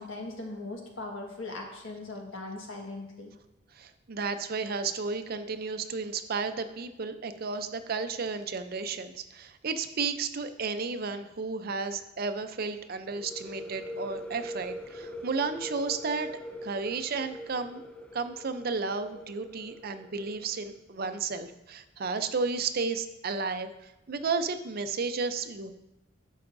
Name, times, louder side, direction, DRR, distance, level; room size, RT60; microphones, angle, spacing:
voice 1, 0.0-3.3, left 2 dB, 80° left, 0 dB, 1.5 m, -39 dB
voice 2, 3.7-16.3 16.6-17.8 18.1-25.7, right 4 dB, 50° right, 9 dB, 0.5 m, -33 dB
sound 1, 13.2-20.8, equal, 5° left, 0.3 m, -43 dB
11.5 x 6.3 x 2.6 m, 0.93 s
head